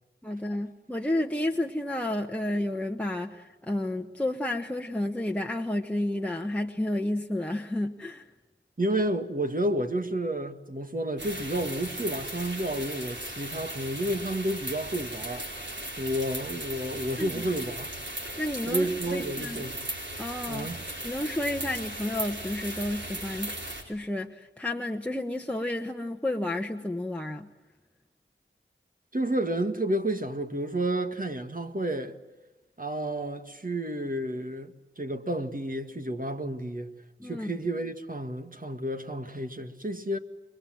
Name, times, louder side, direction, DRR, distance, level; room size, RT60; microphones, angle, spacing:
voice 1, 0.2-8.3 17.2-17.5 18.4-19.7 20.2-20.7 21.0-23.6 23.8-27.5 37.2-37.6, left 1 dB, 5° left, 1.2 m, -31 dB
voice 2, 8.8-17.9 18.7-19.8 20.5-20.8 29.1-32.2 32.8-36.9 37.2-40.2, right 1 dB, 40° right, 1.9 m, -31 dB
sound 1, 11.2-23.8, right 1 dB, 60° right, 5.0 m, -37 dB
28.5 x 22.5 x 7.7 m
wide cardioid pair, 40°, 21 cm